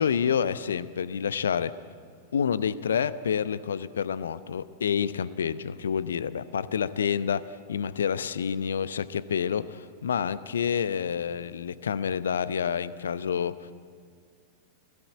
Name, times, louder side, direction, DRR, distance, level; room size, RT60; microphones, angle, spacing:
voice 1, 0.0-1.7 2.3-13.7, left 7 dB, 65° left, 17 dB, 0.8 m, -28 dB
28.5 x 17.5 x 9.1 m, 2.2 s
figure-of-eight pair, 90°, 0 cm